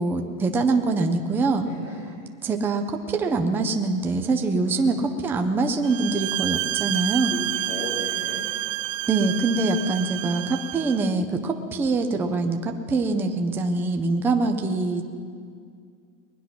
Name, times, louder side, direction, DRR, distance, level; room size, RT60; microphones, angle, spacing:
voice 1, 0.0-1.7 2.4-5.0 5.2-7.3 9.1-15.0, right 3 dB, 5° right, 4 dB, 0.4 m, -24 dB
voice 2, 1.6-2.3 4.6-5.0 7.2-8.5, left 3 dB, 90° left, -2 dB, 2.4 m, -37 dB
sound 1, 5.8-11.1, right 15 dB, 65° right, 0.5 m, -29 dB
21.0 x 9.7 x 5.9 m, 2.2 s
supercardioid pair, 145°, 41 cm